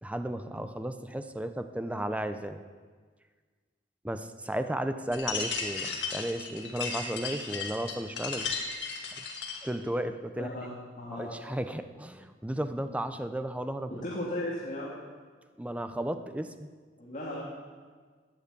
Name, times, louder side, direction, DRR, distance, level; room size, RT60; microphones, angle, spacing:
voice 1, 0.0-2.6 4.0-8.5 9.2-9.3 9.6-10.5 11.1-14.0 15.6-16.7, right 1 dB, 5° right, 9 dB, 0.6 m, -34 dB
sound 1, 5.1-9.7, left 5 dB, 65° left, 2.2 m, -35 dB
voice 2, 10.4-10.7 11.0-11.4 13.9-15.0 17.0-17.4, left 1 dB, 40° left, -6 dB, 2.3 m, -36 dB
13.5 x 9.3 x 8.5 m, 1.5 s
head